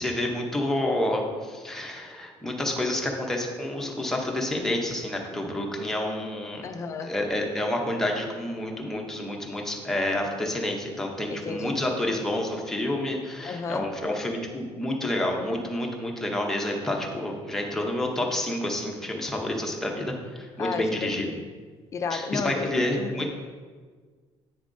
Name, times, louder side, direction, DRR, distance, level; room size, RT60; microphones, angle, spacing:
voice 1, 0.0-6.6 7.0-21.3 22.1-23.3, left 1 dB, 5° left, 0 dB, 0.7 m, -29 dB
voice 2, 6.6-7.1 11.3-11.9 13.4-13.9 20.6-21.5 21.9-23.3, left 5 dB, 30° left, 9 dB, 0.4 m, -33 dB
8.3 x 6.6 x 2.6 m, 1.5 s
cardioid pair, 180°, 11 cm